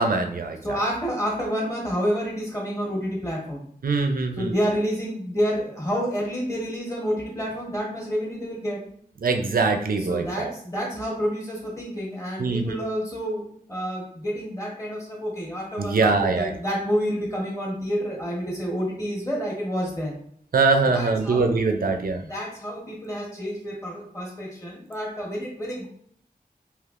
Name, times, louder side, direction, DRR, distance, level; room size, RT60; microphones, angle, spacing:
voice 1, 0.0-0.6 3.8-4.5 9.2-10.5 12.4-12.8 15.8-16.5 20.5-22.2, right 3 dB, 70° right, 5 dB, 0.4 m, -22 dB
voice 2, 0.6-3.6 4.3-8.8 10.0-20.1 20.9-21.5 22.3-25.9, equal, 20° left, -4 dB, 1.2 m, -29 dB
3.3 x 2.8 x 2.4 m, 0.64 s
wide cardioid pair, 80°, 15 cm